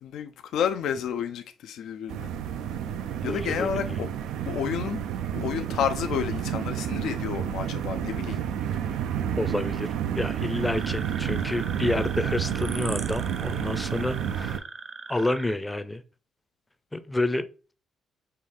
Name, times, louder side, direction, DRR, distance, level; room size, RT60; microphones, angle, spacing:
voice 1, 0.0-2.3 3.2-4.1 4.5-5.0 5.3-8.4, left 8 dB, 80° left, 0.4 m, -30 dB
sound 1, 2.1-14.6, right 9 dB, 90° right, 0.4 m, -30 dB
voice 2, 3.2-4.0 9.4-9.9 10.1-14.6 15.1-16.0 16.9-17.4, left 2 dB, 10° left, 0.5 m, -29 dB
sound 2, 10.7-15.5, right 4 dB, 40° right, 0.7 m, -40 dB
5.5 x 2.4 x 3.2 m
cardioid pair, 90°, 0 cm